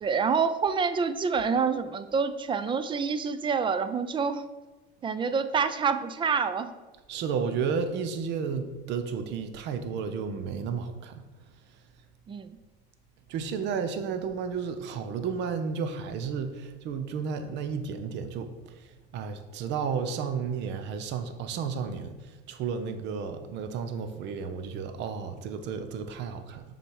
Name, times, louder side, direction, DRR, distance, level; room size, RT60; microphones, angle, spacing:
voice 1, 0.0-4.5 5.0-6.7 12.3-12.6, right 5 dB, 25° right, 12 dB, 0.4 m, -27 dB
voice 2, 7.1-11.2 13.3-18.5 18.8-26.6, right 6 dB, 60° right, 9 dB, 0.8 m, -32 dB
6.7 x 4.1 x 4.7 m, 1.2 s
cardioid pair, 120°, 21 cm